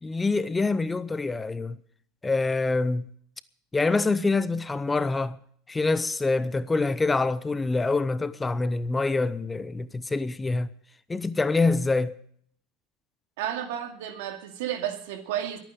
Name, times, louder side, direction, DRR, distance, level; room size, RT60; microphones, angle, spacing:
voice 1, 0.0-1.8 2.2-3.1 3.7-5.4 5.7-10.7 11.1-12.2, left 3 dB, 15° left, 0.6 m, -25 dB
voice 2, 13.4-15.6, right 10 dB, 75° right, 2.4 m, -32 dB
22.0 x 9.2 x 5.1 m
supercardioid pair, 115°, 0 cm